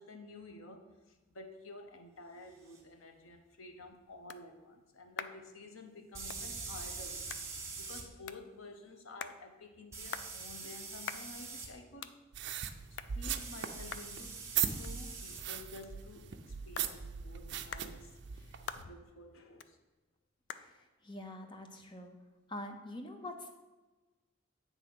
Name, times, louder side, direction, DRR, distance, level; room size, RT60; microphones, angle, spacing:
voice 1, 0.0-7.2 7.8-12.1 12.9-14.4 14.8-19.8, left 2 dB, 90° left, 0.8 m, -51 dB
sound 1, 2.7-2.8 6.1-8.0 9.9-11.7 13.4-15.4, right 4 dB, 15° right, 1.1 m, -44 dB
sound 2, 3.4-22.7, left 7 dB, 60° left, 0.4 m, -51 dB
sound 3, 12.3-18.8, right 9 dB, 60° right, 0.5 m, -39 dB
voice 2, 20.5-22.1 22.5-23.5, left 1 dB, 25° left, 0.7 m, -45 dB
8.8 x 3.5 x 6.1 m
head